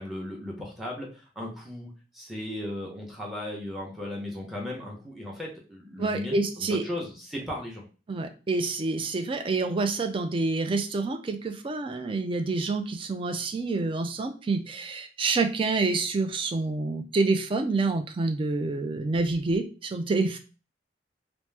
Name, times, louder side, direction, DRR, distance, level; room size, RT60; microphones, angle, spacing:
voice 1, 0.0-7.8, left 1 dB, ahead, -2 dB, 0.8 m, -36 dB
voice 2, 6.0-6.8 8.1-20.4, right 3 dB, 30° right, 7 dB, 0.4 m, -27 dB
2.9 x 2.0 x 3.3 m, 0.35 s
head